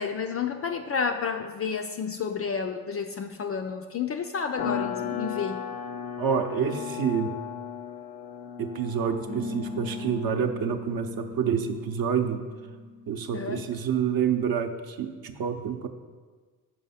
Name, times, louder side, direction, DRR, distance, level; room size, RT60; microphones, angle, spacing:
voice 1, 0.0-5.7 13.3-13.6, left 6 dB, 30° left, 6 dB, 0.4 m, -31 dB
sound 1, 4.6-10.8, left 8 dB, 75° left, 0.7 m, -36 dB
voice 2, 6.2-7.3 8.6-12.4 13.1-15.9, right 7 dB, 45° right, 6 dB, 0.7 m, -28 dB
sound 2, 9.3-14.2, left 2 dB, 85° right, 1.0 m, -39 dB
5.3 x 4.9 x 5.7 m, 1.4 s
hypercardioid pair, 60°, 49 cm